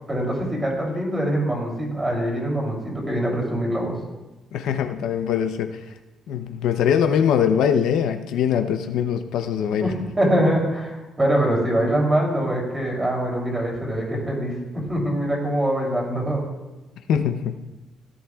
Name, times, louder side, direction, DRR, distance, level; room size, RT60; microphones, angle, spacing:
voice 1, 0.1-4.0 9.8-16.4, right 1 dB, 15° right, -2 dB, 3.1 m, -23 dB
voice 2, 4.5-5.8 6.3-9.9 17.1-17.5, left 8 dB, 85° left, 7 dB, 0.7 m, -22 dB
17.0 x 11.0 x 2.4 m, 1.1 s
cardioid pair, 155°, 0 cm